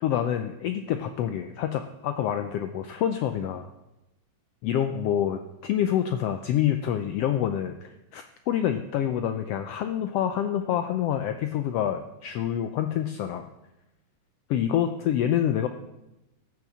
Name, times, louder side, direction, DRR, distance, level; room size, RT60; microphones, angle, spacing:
voice 1, 0.0-3.7 4.6-13.5 14.5-15.7, left 10 dB, 85° left, 8 dB, 1.4 m, -27 dB
14.5 x 6.3 x 7.3 m, 0.96 s
omnidirectional pair, 3.4 m